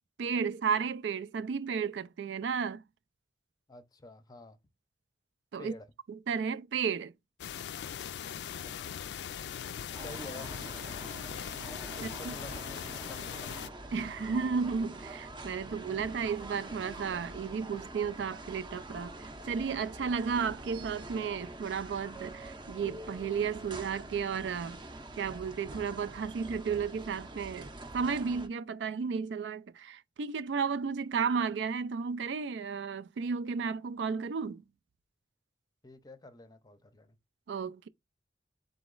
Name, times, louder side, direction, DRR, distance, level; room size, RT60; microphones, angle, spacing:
voice 1, 0.2-2.8 5.5-5.7 6.1-7.1 12.0-12.3 13.9-24.8 25.2-34.6 37.5-37.9, right 6 dB, 85° right, 0.4 m, -33 dB
voice 2, 3.7-4.6 5.6-5.9 8.6-9.1 9.9-10.6 11.9-13.6 35.8-37.2, left 2 dB, 20° left, 0.6 m, -49 dB
sound 1, 7.4-13.7, left 9 dB, 70° left, 0.3 m, -40 dB
sound 2, 9.9-28.5, right 2 dB, 25° right, 0.6 m, -45 dB
3.9 x 2.9 x 3.8 m
head